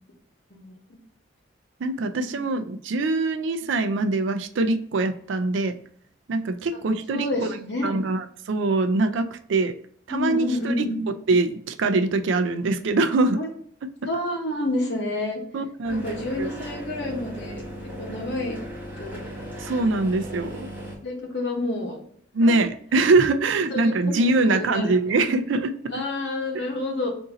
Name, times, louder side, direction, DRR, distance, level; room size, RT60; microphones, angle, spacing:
voice 1, 1.8-5.8 6.3-7.6 7.8-9.8 10.1-10.9 11.3-13.4 15.5-16.5 19.6-20.7 22.3-26.0 26.5-26.6, right 3 dB, 75° right, 9 dB, 0.4 m, -23 dB
voice 2, 7.1-7.9 10.1-11.0 13.3-13.5 14.0-15.4 15.9-17.6 18.0-18.6 19.0-19.3 21.0-22.0 22.4-22.5 23.7-25.0 25.9-27.1, left 2 dB, 60° left, 1 dB, 1.0 m, -29 dB
sound 1, 15.8-21.0, equal, 10° right, 0.9 m, -37 dB
3.8 x 2.6 x 3.9 m, 0.63 s
head